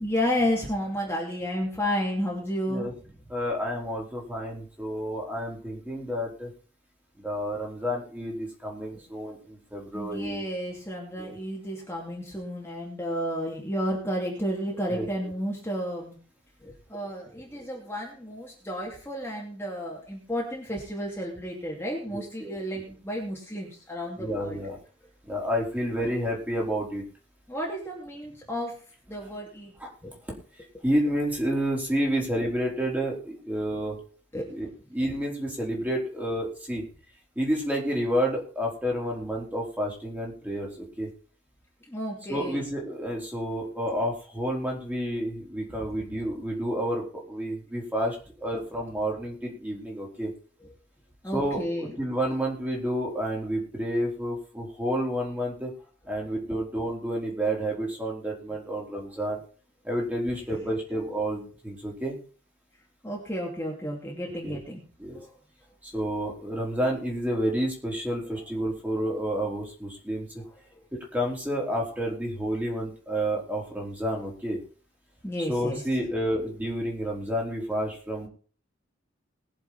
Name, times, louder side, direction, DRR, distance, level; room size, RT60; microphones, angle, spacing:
voice 1, 0.0-2.9 9.9-16.2 16.6-24.6 27.5-28.8 29.1-29.7 30.0-30.1 34.3-34.5 41.9-42.6 51.2-52.0 60.5-60.6 63.0-64.8 65.1-65.3 75.2-75.8, equal, 15° left, -3 dB, 2.7 m, -32 dB
voice 2, 3.3-6.5 7.2-10.4 11.2-11.4 14.9-15.0 22.1-22.6 24.2-24.8 25.2-27.0 29.8-29.9 30.8-34.0 34.5-36.8 37.4-41.1 42.3-47.0 47.3-50.3 51.3-55.7 56.1-59.4 59.8-62.2 64.4-64.6 65.0-65.2 65.8-70.4 70.9-74.6 75.5-78.3, equal, 10° right, -2 dB, 3.7 m, -30 dB
21.0 x 7.2 x 4.2 m, 0.40 s
head